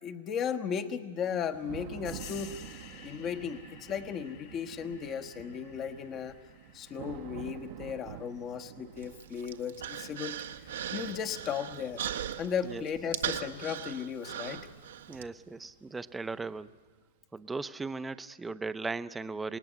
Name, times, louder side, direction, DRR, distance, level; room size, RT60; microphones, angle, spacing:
voice 1, 0.0-2.6 3.0-6.4 6.7-10.4 10.9-12.0 12.4-14.7, left 7 dB, 30° left, 7 dB, 1.3 m, -35 dB
Thunder / Rain, 1.2-17.0, right 11 dB, 55° right, 1.2 m, -50 dB
sound 1, 2.1-10.3, left 8 dB, 50° left, 1.9 m, -54 dB
Human voice, 9.0-15.2, right 10 dB, 75° right, 1.5 m, -39 dB
voice 2, 12.6-12.9 15.1-16.7 17.3-19.6, right 3 dB, 10° right, 13 dB, 0.8 m, -37 dB
27.5 x 19.0 x 9.9 m, 1.4 s
hypercardioid pair, 125°, 0 cm